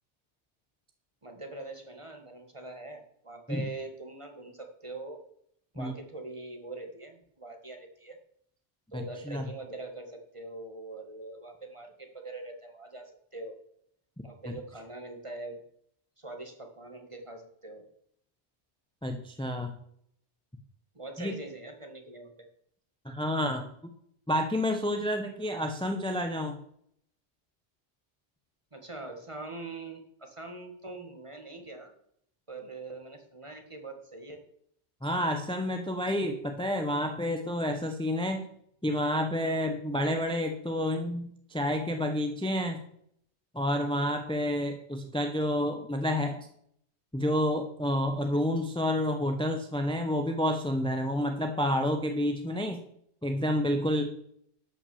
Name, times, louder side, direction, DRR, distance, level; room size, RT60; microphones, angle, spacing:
voice 1, 1.2-5.2 5.7-8.2 8.9-13.6 14.2-15.6 16.2-17.8 20.9-22.3 28.7-31.9 32.5-34.4, right 2 dB, 25° right, 5 dB, 1.8 m, -43 dB
voice 2, 8.9-9.4 14.5-14.6 19.0-19.7 21.2-21.3 23.0-23.7 24.3-26.6 35.0-38.4 38.8-42.8 43.5-46.5 47.1-52.8 53.2-54.2, left 1 dB, 5° left, 5 dB, 0.9 m, -29 dB
12.0 x 6.0 x 7.0 m, 0.68 s
omnidirectional pair, 1.2 m